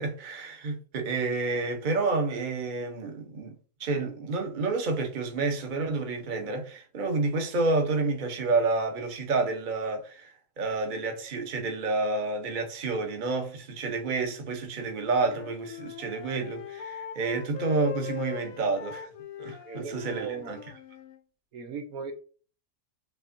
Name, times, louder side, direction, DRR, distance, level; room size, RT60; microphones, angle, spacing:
voice 1, 0.0-3.5 3.8-19.1 19.4-20.6, right 3 dB, 35° right, 0.9 m, -29 dB
Wind instrument woodwind instrument, 14.8-21.2, left 9 dB, 70° left, 1.0 m, -42 dB
voice 2, 19.6-20.6 21.5-22.1, right 5 dB, 70° right, 1.1 m, -38 dB
5.8 x 3.5 x 2.6 m
omnidirectional pair, 1.7 m